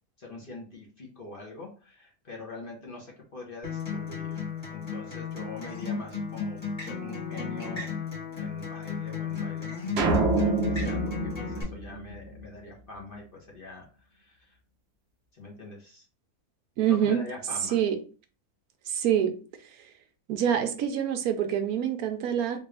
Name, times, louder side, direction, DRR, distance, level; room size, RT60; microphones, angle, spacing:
voice 1, 0.2-4.3 4.7-8.0 8.4-14.6 15.3-16.0 16.9-17.8, left 3 dB, 40° left, -2 dB, 1.0 m, -44 dB
Acoustic guitar, 3.6-11.6, left 5 dB, 20° left, 1.4 m, -34 dB
sound 1, 10.0-12.5, right 3 dB, 55° right, 0.8 m, -27 dB
voice 2, 16.8-17.2 17.7-18.0 18.9-19.3 20.3-22.6, right 9 dB, 75° right, 6 dB, 1.0 m, -26 dB
3.5 x 2.5 x 3.2 m, 0.36 s
omnidirectional pair, 1.6 m